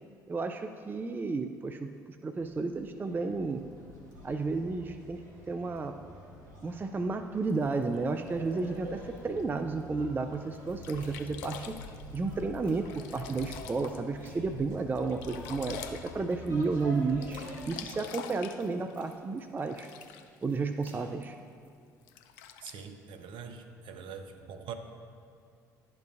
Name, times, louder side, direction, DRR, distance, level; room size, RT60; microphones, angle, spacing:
voice 1, 0.3-1.9 2.2-3.6 4.2-5.2 5.5-6.0 6.6-11.8 12.1-19.9 20.4-21.4, right 4 dB, 20° right, 7 dB, 0.3 m, -32 dB
sound 1, 2.3-17.8, left 1 dB, 75° right, 1.5 m, -47 dB
Sink (filling or washing), 7.5-9.4 10.0-10.1 10.5-10.6 10.8-14.3 14.7-16.8 17.1-20.4 21.2-21.3 22.0-22.8, left 8 dB, 70° left, 0.4 m, -46 dB
sound 2, 10.7-11.4 12.0-13.1 13.6-14.6 15.1-16.0 16.7-17.8 18.3-19.4 19.6-21.7, left 1 dB, 90° left, 1.3 m, -55 dB
voice 2, 22.6-24.7, right 6 dB, 55° right, 7 dB, 0.6 m, -43 dB
11.5 x 3.9 x 2.5 m, 2.2 s
figure-of-eight pair, 55°, 10 cm